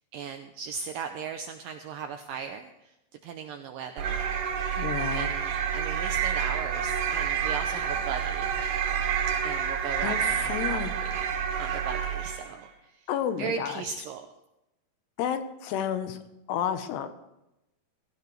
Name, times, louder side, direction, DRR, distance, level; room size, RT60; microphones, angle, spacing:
voice 1, 0.1-2.9 3.2-4.2 5.1-8.5 9.4-11.2 11.6-12.7 12.9-13.1 13.4-14.3, right 6 dB, 85° right, 6 dB, 2.0 m, -37 dB
sound 1, 4.0-12.6, right 8 dB, 70° right, 2.0 m, -29 dB
voice 2, 4.8-5.3 10.0-10.2 10.5-11.0 13.1-13.8 15.2-16.2 16.5-17.1, left 9 dB, 85° left, 9 dB, 3.1 m, -30 dB
20.0 x 16.0 x 3.3 m, 0.90 s
omnidirectional pair, 4.8 m